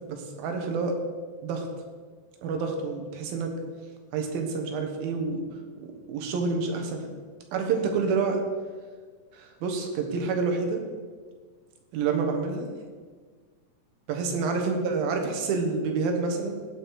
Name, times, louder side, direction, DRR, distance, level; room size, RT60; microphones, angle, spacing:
voice 1, 0.1-1.0 1.4-1.7 2.4-3.5 4.1-5.4 5.8-7.1 7.5-8.4 9.3-10.8 11.9-12.7 14.1-16.5, right 4 dB, 90° right, 3 dB, 3.1 m, -28 dB
15.5 x 5.2 x 4.7 m, 1.5 s
omnidirectional pair, 4.1 m